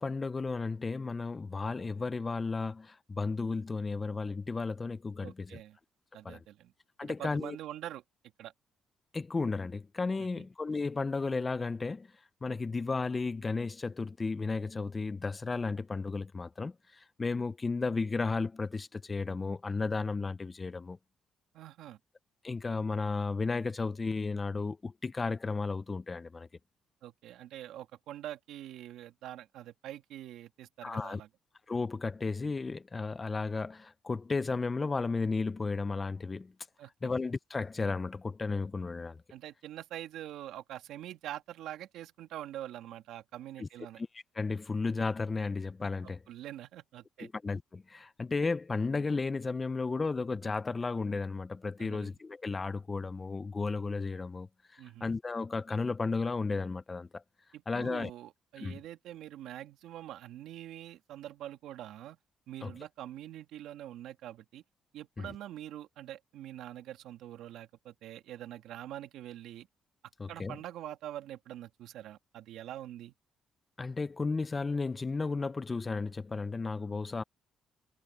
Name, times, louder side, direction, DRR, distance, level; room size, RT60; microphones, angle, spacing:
voice 1, 0.0-5.6 6.2-6.4 7.0-7.6 9.1-12.1 12.4-21.0 22.4-26.5 30.8-31.2 31.7-36.5 37.0-39.2 43.6-43.7 44.0-46.2 47.2-57.2 57.7-58.1 58.6-58.8 62.6-62.7 65.2-65.3 70.2-70.6 73.8-77.2, left 4 dB, 25° left, 0.6 m, -34 dB
voice 2, 5.2-5.8 6.1-6.7 7.0-8.0 8.4-8.5 10.4-10.5 21.5-22.0 27.0-31.3 36.8-36.9 39.3-44.0 46.0-47.3 51.8-52.1 54.8-55.1 57.5-62.2 62.5-64.6 64.9-69.7 70.3-73.1, right 12 dB, 85° right, 2.4 m, -45 dB
cardioid pair, 95°, 0 cm